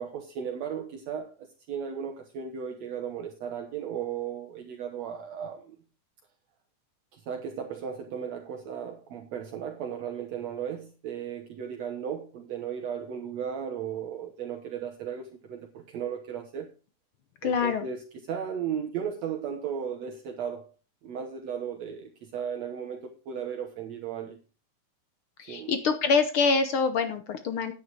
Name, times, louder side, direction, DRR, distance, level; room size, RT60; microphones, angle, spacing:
voice 1, 0.0-5.8 7.1-16.7 17.4-20.7 21.0-24.4 25.5-25.7, right 8 dB, 65° right, 2.1 m, -35 dB
voice 2, 17.4-17.8 25.4-27.7, left 5 dB, 75° left, 1.2 m, -25 dB
9.5 x 9.3 x 4.7 m
omnidirectional pair, 3.6 m